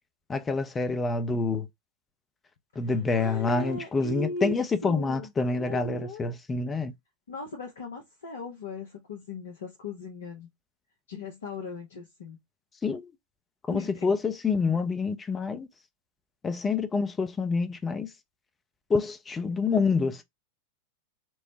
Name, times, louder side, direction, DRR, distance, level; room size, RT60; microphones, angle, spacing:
voice 1, 0.3-1.7 2.8-6.9 12.8-13.1 13.7-15.7 16.4-18.1 18.9-20.2, left 4 dB, 15° left, 0.5 m, -27 dB
voice 2, 3.1-4.5 4.8-6.3 7.3-10.5 11.1-12.4 13.7-13.9, left 2 dB, 65° left, 0.7 m, -38 dB
4.6 x 2.1 x 2.7 m
figure-of-eight pair, 90°, 0 cm